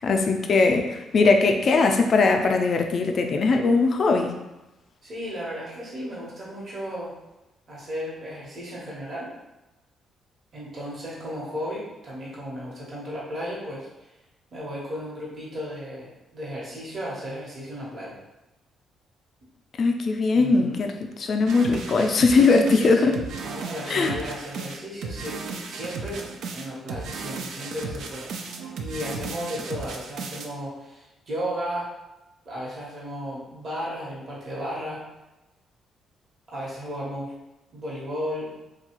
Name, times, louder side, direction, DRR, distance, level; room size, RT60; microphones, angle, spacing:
voice 1, 0.0-4.3 19.8-20.9 21.2-23.2 23.9-24.2, left 3 dB, 50° left, 4 dB, 0.4 m, -20 dB
voice 2, 5.0-7.1 7.7-9.3 10.5-13.9 14.5-18.2 20.3-20.9 22.3-28.3 28.7-31.9 32.4-35.0 36.5-37.3 37.7-38.5, equal, 50° right, -6 dB, 1.1 m, -34 dB
sound 1, 21.5-30.5, right 4 dB, 75° right, 0.3 m, -35 dB
2.8 x 2.3 x 2.9 m, 0.99 s
cardioid pair, 90°, 0 cm